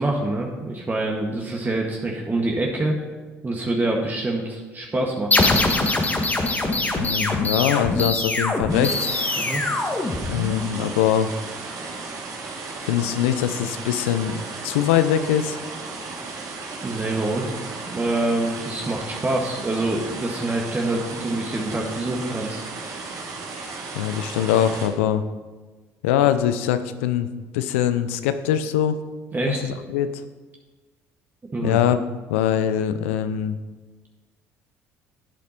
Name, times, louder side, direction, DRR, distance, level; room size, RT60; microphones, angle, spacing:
voice 1, 0.0-2.9 3.4-5.4 9.4-9.6 16.8-17.5 17.9-22.6 29.3-29.8 31.5-31.8, right 2 dB, 25° right, 0 dB, 1.8 m, -25 dB
sound 1, 5.3-10.7, left 2 dB, 25° left, 1.7 m, -23 dB
voice 2, 7.0-9.1 10.3-11.3 12.8-15.6 23.9-25.2 26.0-27.3 27.5-29.0 29.5-30.2 31.6-32.0 32.3-33.6, left 10 dB, 85° left, 11 dB, 0.6 m, -22 dB
sound 2, 8.7-24.9, right 3 dB, 60° right, 2.5 m, -35 dB
12.0 x 8.3 x 4.4 m, 1.3 s
hypercardioid pair, 65°, 7 cm